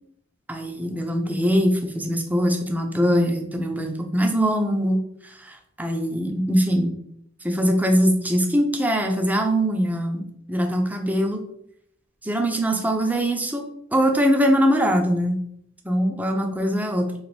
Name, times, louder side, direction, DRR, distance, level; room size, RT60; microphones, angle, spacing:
voice 1, 0.5-6.9 7.4-11.4 12.2-13.7 13.9-15.4 15.8-17.1, equal, 10° right, 4 dB, 0.4 m, -22 dB
3.9 x 2.5 x 3.2 m, 0.70 s
head